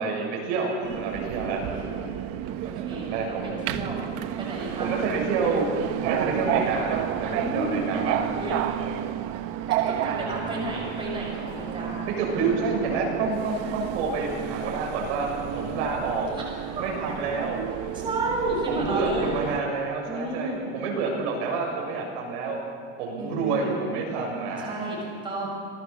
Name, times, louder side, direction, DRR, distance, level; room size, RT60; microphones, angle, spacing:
voice 1, 0.0-1.6 2.9-3.5 4.8-8.2 12.1-16.3 16.8-17.6 18.7-22.6 23.0-24.8, right 4 dB, 70° right, -1 dB, 7.1 m, -28 dB
Subway metro underground, 0.8-19.6, right 10 dB, 40° right, 1.1 m, -31 dB
voice 2, 2.6-4.0 4.4-4.9 7.3-7.8 8.4-8.6 9.9-12.1 16.3-16.4 16.7-16.8 17.9-19.3 20.1-20.7 23.2-23.7 24.6-25.0 25.2-25.5, right 2 dB, 15° right, -4 dB, 6.4 m, -31 dB
26.5 x 19.5 x 7.4 m, 2.1 s
cardioid pair, 170°, 36 cm